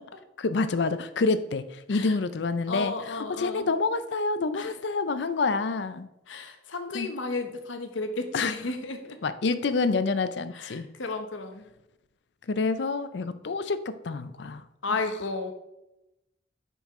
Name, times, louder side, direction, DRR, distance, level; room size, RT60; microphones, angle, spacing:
voice 1, 0.4-6.1 6.9-7.1 8.3-8.5 9.2-10.9 12.5-14.6, left 3 dB, 65° left, 12 dB, 0.5 m, -27 dB
voice 2, 2.7-3.7 4.5-4.7 6.3-9.2 10.5-11.7 14.8-15.5, left 3 dB, 85° left, 7 dB, 0.9 m, -33 dB
7.2 x 5.5 x 3.6 m, 0.90 s
head